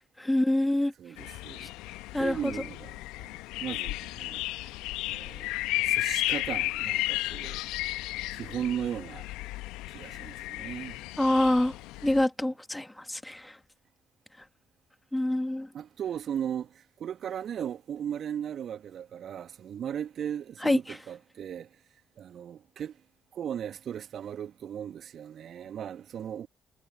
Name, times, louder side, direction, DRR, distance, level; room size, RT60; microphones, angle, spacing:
voice 1, 0.2-0.9 2.1-2.5 11.2-11.8 12.0-13.6 15.1-15.7 20.6-20.8, left 1 dB, 10° left, 2.2 m, -26 dB
voice 2, 1.0-3.3 3.6-4.4 5.0-5.5 5.8-7.6 8.3-9.3 9.9-11.0 15.7-21.7 22.2-23.0 23.3-26.5, right 9 dB, 55° right, 1.7 m, -37 dB
sound 1, 1.2-12.3, left 19 dB, 70° left, 1.2 m, -34 dB
figure-of-eight pair, 45°, 0 cm